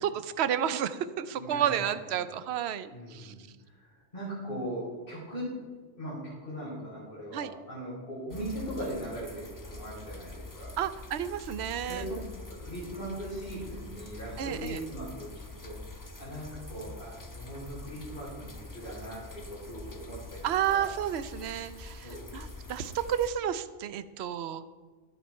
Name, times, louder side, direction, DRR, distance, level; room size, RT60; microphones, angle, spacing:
voice 1, 0.0-3.3 7.3-7.5 10.8-12.1 14.4-14.8 20.4-24.6, right 9 dB, 60° right, 13 dB, 0.9 m, -31 dB
voice 2, 1.3-2.2 2.9-3.4 3.7-5.5 6.0-10.8 11.8-12.2 12.6-15.3 15.6-15.7 16.2-20.4 20.7-20.9 22.0-22.3, right 1 dB, 40° left, -9 dB, 5.2 m, -39 dB
sound 1, 8.3-23.3, left 3 dB, 15° left, 0.8 m, -45 dB
13.5 x 11.0 x 4.5 m, 1.5 s
omnidirectional pair, 1.3 m